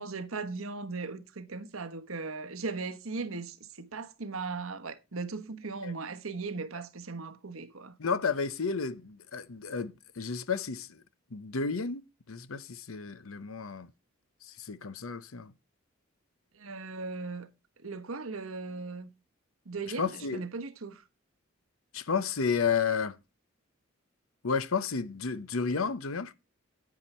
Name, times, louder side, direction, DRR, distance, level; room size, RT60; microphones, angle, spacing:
voice 1, 0.0-7.9 16.6-17.5 17.8-19.1 19.7-21.0, right 4 dB, 85° right, 1.2 m, -38 dB
voice 2, 8.0-11.0 11.3-13.9 14.6-15.5 20.0-20.4 21.9-23.2 24.4-26.3, left 5 dB, 85° left, 0.8 m, -32 dB
9.5 x 9.5 x 4.2 m
head